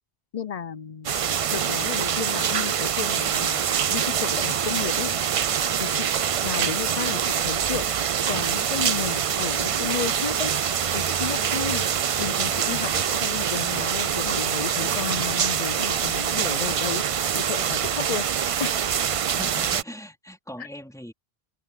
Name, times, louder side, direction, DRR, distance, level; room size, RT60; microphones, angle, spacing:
voice 1, 0.3-1.1 1.5-3.6 3.9-5.1 5.8-6.1 6.4-7.8 8.3-10.5 10.9-11.9 12.2-18.2 18.6-18.8, left 7 dB, 45° left, 0.6 m, -32 dB
sound 1, 1.0-19.8, right 8 dB, 50° right, 0.4 m, -25 dB
voice 2, 19.3-21.1, equal, 5° left, 4.0 m, -40 dB
omnidirectional pair, 1.0 m